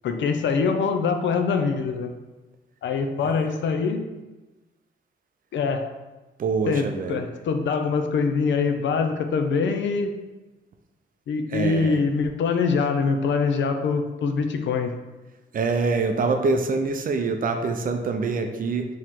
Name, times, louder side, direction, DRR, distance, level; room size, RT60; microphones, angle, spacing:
voice 1, 0.0-2.1 2.8-4.0 5.5-5.8 6.7-10.1 11.3-14.9, left 5 dB, 70° left, 6 dB, 0.5 m, -24 dB
voice 2, 6.4-7.2 11.5-12.0 15.5-18.9, right 4 dB, 45° right, 5 dB, 0.5 m, -25 dB
4.7 x 3.0 x 3.6 m, 1.1 s
wide cardioid pair, 145°, 20 cm